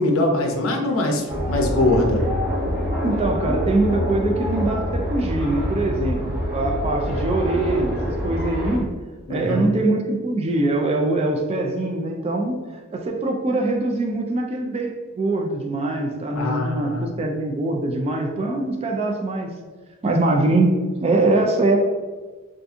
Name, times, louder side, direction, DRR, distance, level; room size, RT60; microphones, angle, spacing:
voice 1, 0.0-2.2 9.3-9.6 16.3-17.1, left 2 dB, 70° left, 1 dB, 0.5 m, -22 dB
sound 1, 1.3-8.8, equal, 45° right, 1.1 m, -26 dB
voice 2, 3.0-8.9 9.3-12.6 12.9-19.5 20.0-20.7 21.0-21.8, right 2 dB, 30° right, 2 dB, 0.3 m, -23 dB
2.6 x 2.5 x 3.5 m, 1.4 s
head